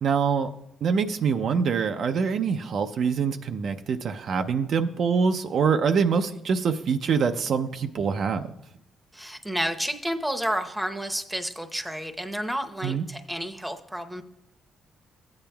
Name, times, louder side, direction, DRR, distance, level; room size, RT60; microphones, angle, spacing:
voice 1, 0.0-0.5 0.8-8.5 12.8-13.0, right 6 dB, 60° right, 7 dB, 0.5 m, -25 dB
voice 2, 9.1-14.2, equal, 5° right, 6 dB, 0.8 m, -30 dB
14.5 x 8.7 x 2.3 m, 0.83 s
cardioid pair, 90°, 0 cm